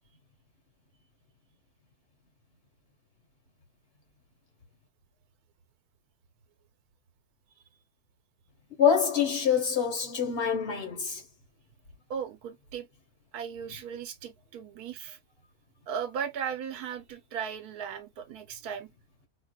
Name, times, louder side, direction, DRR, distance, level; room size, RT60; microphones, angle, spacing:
voice 1, 8.8-11.2, left 7 dB, 45° left, 1.2 m, -25 dB
voice 2, 12.1-12.9 13.3-15.2 15.9-18.9, right 7 dB, 75° right, 1.4 m, -37 dB
4.4 x 2.4 x 2.3 m
omnidirectional pair, 1.6 m